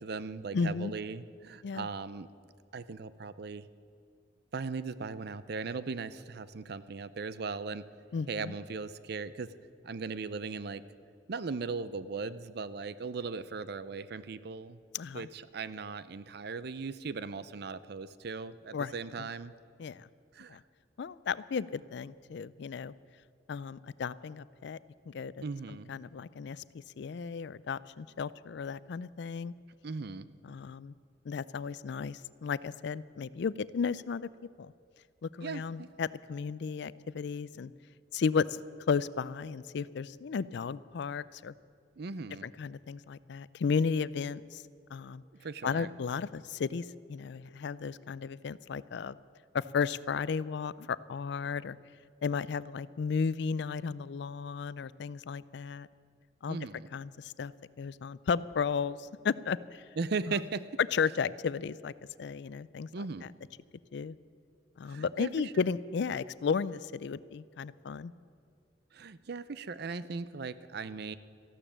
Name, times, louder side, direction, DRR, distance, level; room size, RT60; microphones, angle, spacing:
voice 1, 0.0-2.3 2.7-3.7 4.5-7.8 8.3-9.5 9.8-10.8 11.3-14.8 15.1-19.5 20.3-20.6 25.4-25.9 29.8-30.3 35.4-35.9 42.0-42.5 45.4-45.9 56.5-56.9 60.0-60.7 62.9-63.2 64.9-65.6 68.9-71.2, right 4 dB, 60° right, 15 dB, 0.6 m, -38 dB
voice 2, 0.5-0.9 1.6-1.9 8.1-8.5 14.9-15.3 18.7-18.9 19.2-19.3 19.8-20.1 20.5-20.6 21.0-22.9 23.5-24.8 25.1-26.6 27.0-29.5 30.4-30.9 31.3-34.3 34.6-34.7 35.2-37.7 38.1-38.6 38.9-41.5 42.4-44.6 44.9-45.2 45.6-49.2 49.5-51.8 52.2-55.9 56.4-56.6 56.9-57.5 57.8-59.8 60.9-61.9 62.2-63.3 63.9-64.2 64.8-68.1, left 5 dB, 65° left, 19 dB, 0.4 m, -34 dB
14.0 x 12.0 x 7.3 m, 2.4 s
head